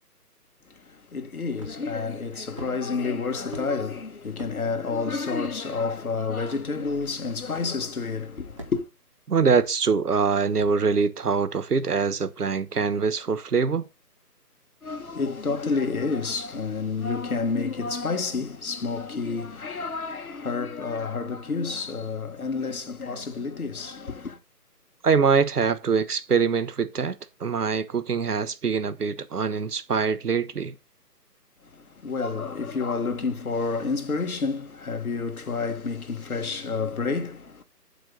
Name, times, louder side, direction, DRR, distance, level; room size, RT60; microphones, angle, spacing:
voice 1, 0.7-8.9 14.8-24.4 31.6-37.6, left 4 dB, 60° left, 1.7 m, -29 dB
sound 1, 1.6-2.0 2.6-2.7 3.5-3.7 4.4-4.6 5.4-5.6 6.5-6.6 7.5-7.7 8.6-9.0 9.6-9.7 10.6-10.8, equal, 20° right, 1.1 m, -41 dB
voice 2, 9.3-13.8 25.0-27.1 27.4-30.7, right 5 dB, 70° right, 1.3 m, -24 dB
8.5 x 8.0 x 3.8 m
figure-of-eight pair, 175°, 48 cm